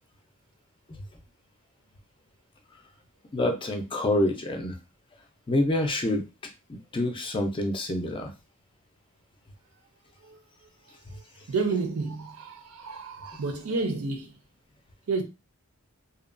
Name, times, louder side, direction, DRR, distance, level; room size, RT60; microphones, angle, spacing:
voice 1, 3.3-4.8 5.5-6.2 6.9-8.3, left 1 dB, 25° left, 0.4 m, -26 dB
voice 2, 10.2-10.7 11.1-14.4 15.1-15.2, right 4 dB, 80° right, 0.6 m, -31 dB
2.7 x 2.2 x 2.4 m
head